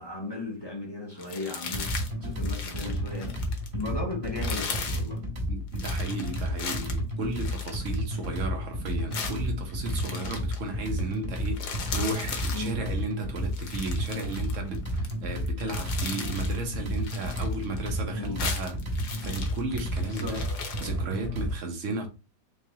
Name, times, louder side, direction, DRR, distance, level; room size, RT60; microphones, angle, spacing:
voice 1, 0.0-1.9 2.2-3.4 3.7-5.2 12.5-12.8 18.1-18.5 20.1-20.4, left 2 dB, 30° left, 0.5 m, -36 dB
sound 1, 1.2-2.1 2.4-3.8 4.3-5.1 5.8-8.4 9.1-10.6 11.0-11.1 11.4-12.7 13.4-15.1 15.4-16.6 16.9-18.0 18.3-20.9, left 5 dB, 75° left, 1.4 m, -37 dB
sound 2, 1.6-21.5, equal, 35° right, 1.6 m, -32 dB
voice 2, 5.5-20.5 20.8-22.1, right 3 dB, 55° right, 1.2 m, -34 dB
3.9 x 3.5 x 2.8 m
omnidirectional pair, 1.8 m